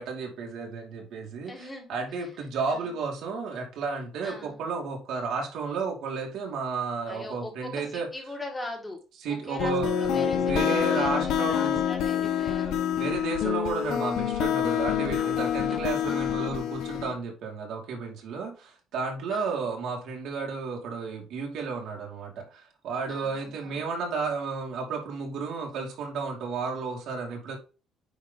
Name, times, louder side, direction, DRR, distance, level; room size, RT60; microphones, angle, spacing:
voice 1, 0.0-8.1 9.2-11.8 13.0-27.6, right 4 dB, 70° right, 0 dB, 2.5 m, -33 dB
voice 2, 1.5-2.0 2.7-2.9 4.2-4.6 7.1-9.0 9.3-12.8 15.2-15.3 15.7-16.5 19.3-19.7 23.1-23.8, left 1 dB, 10° left, 0 dB, 2.0 m, -41 dB
sound 1, 9.6-17.1, left 9 dB, 75° left, 1.0 m, -27 dB
9.4 x 3.3 x 4.0 m, 0.33 s
cardioid pair, 140°, 0 cm